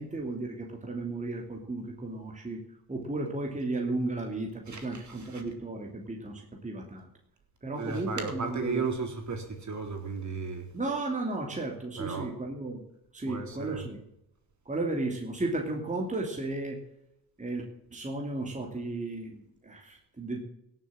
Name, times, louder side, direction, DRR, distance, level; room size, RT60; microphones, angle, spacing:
voice 1, 0.0-2.6 2.9-7.1 7.6-8.9 10.7-12.8 13.1-14.0 14.6-16.8 17.4-17.6 17.9-20.4, right 2 dB, 15° right, 1 dB, 2.8 m, -34 dB
voice 2, 4.7-5.4 7.8-10.7 12.0-12.3 13.3-13.8, right 5 dB, 45° right, 4 dB, 3.9 m, -35 dB
17.0 x 7.7 x 7.6 m, 0.82 s
cardioid pair, 80°, 41 cm